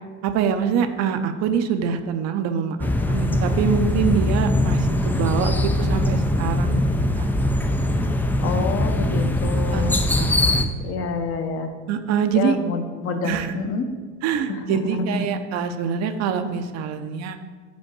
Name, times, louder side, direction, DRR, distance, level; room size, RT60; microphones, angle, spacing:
voice 1, 0.2-6.8 7.2-7.3 9.7-9.8 10.3-10.4 11.9-12.6 13.2-13.5 14.2-17.4, right 7 dB, 55° right, 8 dB, 0.7 m, -24 dB
sound 1, 2.8-10.6, left 1 dB, 5° left, 0.3 m, -21 dB
voice 2, 8.4-10.0 10.8-11.7 12.3-13.8 14.5-15.3, left 4 dB, 45° left, 6 dB, 0.9 m, -27 dB
5.6 x 5.3 x 6.0 m, 1.5 s
cardioid pair, 135°, 32 cm